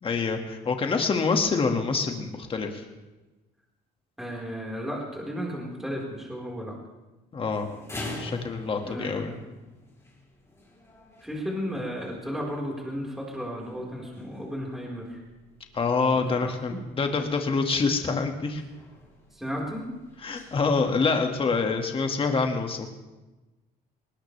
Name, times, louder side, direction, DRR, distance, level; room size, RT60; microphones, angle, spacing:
voice 1, 0.0-2.8 7.3-7.7 8.2-9.3 15.7-18.6 20.2-22.9, left 4 dB, 30° left, 4 dB, 2.0 m, -26 dB
voice 2, 4.2-6.8 8.8-9.4 11.2-15.2 16.4-16.8 19.3-19.9, equal, ahead, -3 dB, 4.6 m, -34 dB
sound 1, 7.5-22.1, left 2 dB, 15° left, 5.5 m, -46 dB
20.0 x 19.5 x 3.4 m, 1.1 s
cardioid pair, 110°, 17 cm